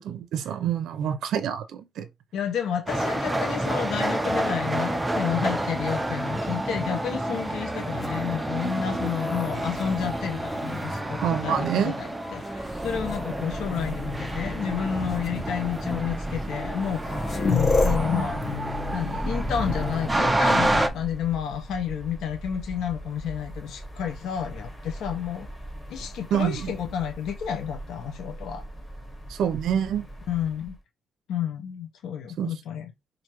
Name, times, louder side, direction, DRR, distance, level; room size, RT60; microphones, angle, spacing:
voice 1, 0.0-2.1 11.2-12.0 26.3-26.7 29.3-30.1 32.4-32.5, right 9 dB, 80° right, 0.5 m, -27 dB
voice 2, 2.3-17.2 17.4-18.4 18.9-25.5 25.9-28.6 30.3-30.7 31.3-32.9, left 8 dB, 85° left, 0.6 m, -30 dB
sound 1, 2.9-20.9, right 1 dB, 10° right, 0.5 m, -29 dB
sound 2, 7.9-11.8 12.4-13.2 14.3-14.4 15.1-15.3 16.4-16.5 16.7-21.2 23.1-23.8, left 3 dB, 35° left, 0.9 m, -31 dB
sound 3, 12.5-30.8, equal, 10° left, 1.1 m, -39 dB
4.5 x 2.6 x 2.9 m
cardioid pair, 145°, 0 cm